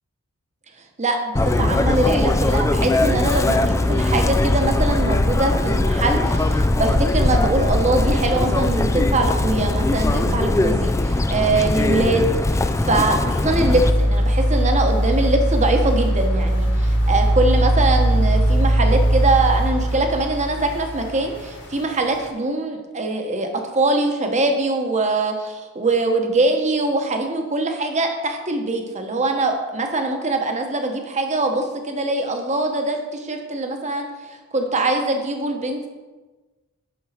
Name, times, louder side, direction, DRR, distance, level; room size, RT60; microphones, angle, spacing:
voice 1, 1.0-12.3 12.8-23.5 23.7-35.9, right 2 dB, 35° right, 4 dB, 1.1 m, -22 dB
Chirp tweet, 1.4-13.9, left 2 dB, 15° left, 0.3 m, -20 dB
sound 1, 13.5-21.8 22.2-22.3, right 1 dB, 55° left, 1.8 m, -19 dB
8.0 x 6.1 x 5.0 m, 1.2 s
head